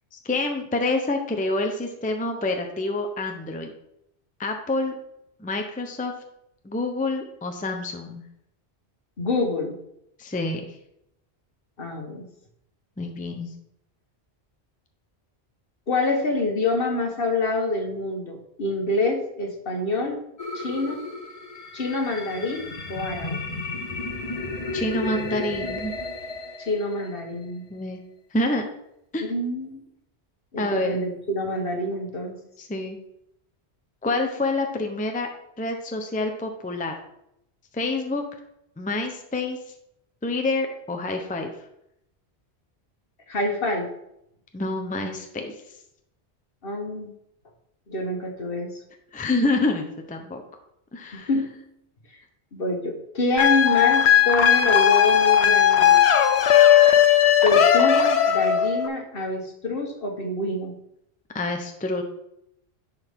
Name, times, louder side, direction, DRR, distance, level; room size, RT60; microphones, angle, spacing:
voice 1, 0.1-3.7 4.4-5.0 5.4-6.1 6.6-8.2 10.2-10.6 13.0-13.5 24.7-25.9 27.7-28.0 28.3-28.7 29.1-29.3 30.6-31.0 32.6-33.0 34.0-35.3 35.6-36.9 37.7-38.2 38.8-39.6 40.2-41.5 44.5-45.6 49.1-50.4 50.9-51.3 61.3-62.0, left 2 dB, 10° left, 4 dB, 0.6 m, -27 dB
voice 2, 9.2-9.7 11.8-12.3 15.9-20.2 20.5-21.0 21.7-23.4 26.6-27.6 29.2-29.8 30.5-32.4 43.3-43.9 46.6-47.1 47.9-48.8 51.1-51.5 52.5-56.0 57.4-60.7, left 2 dB, 55° left, 2 dB, 1.5 m, -26 dB
sound 1, 20.4-27.4, left 3 dB, 35° left, 1.0 m, -33 dB
sound 2, 53.4-58.9, left 9 dB, 75° left, 1.0 m, -17 dB
10.5 x 4.7 x 3.6 m, 0.79 s
omnidirectional pair, 1.1 m